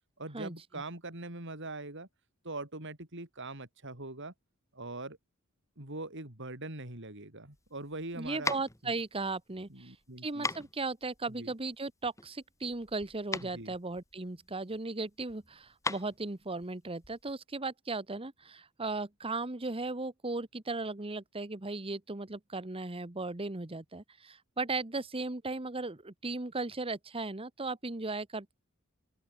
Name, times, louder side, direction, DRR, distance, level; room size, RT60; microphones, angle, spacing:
voice 1, 0.2-2.1 2.4-4.3 4.8-5.2 5.8-8.5 8.8-9.0 9.7-10.5 11.4-11.5 13.4-13.7, right 2 dB, 60° right, 5.3 m, -42 dB
sound 1, 7.5-17.4, left 3 dB, 15° left, 3.7 m, -40 dB
voice 2, 8.1-9.9 10.2-28.6, right 3 dB, 25° right, 1.2 m, -37 dB
open air
head